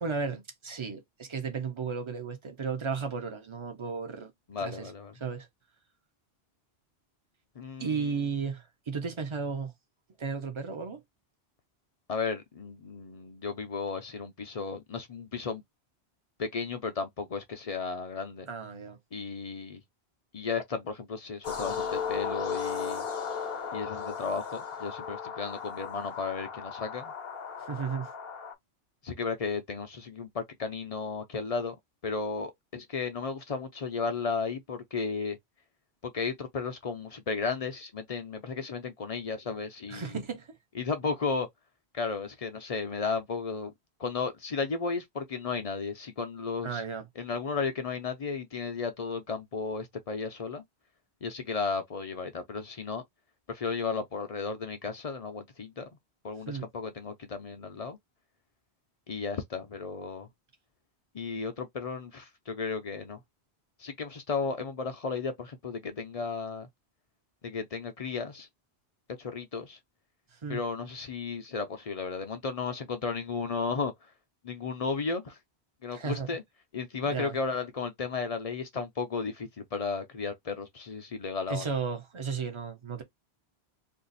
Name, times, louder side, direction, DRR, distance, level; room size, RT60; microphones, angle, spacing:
voice 1, 0.0-4.3 4.6-4.9 5.2-5.5 7.8-9.7 10.2-11.0 18.5-19.0 27.7-28.1 39.9-40.5 46.6-47.0 56.5-56.7 70.3-70.6 75.9-76.4 77.0-77.3 81.5-83.0, right 5 dB, 30° right, 0.8 m, -34 dB
voice 2, 4.5-5.1 7.6-8.3 12.1-15.6 16.4-18.5 19.1-19.8 20.3-23.1 23.7-27.1 29.0-31.7 32.0-35.4 36.0-40.2 40.8-41.5 41.9-43.7 44.0-46.8 47.2-50.6 51.2-53.0 53.5-55.9 56.2-58.0 59.1-60.3 61.1-63.2 63.8-66.7 67.4-68.5 69.2-69.8 70.5-74.1 74.4-75.4 75.8-76.4 76.7-81.7, left 4 dB, 45° left, 0.5 m, -34 dB
sound 1, 21.4-28.5, left 6 dB, 65° left, 1.0 m, -36 dB
2.6 x 2.5 x 3.9 m
omnidirectional pair, 1.1 m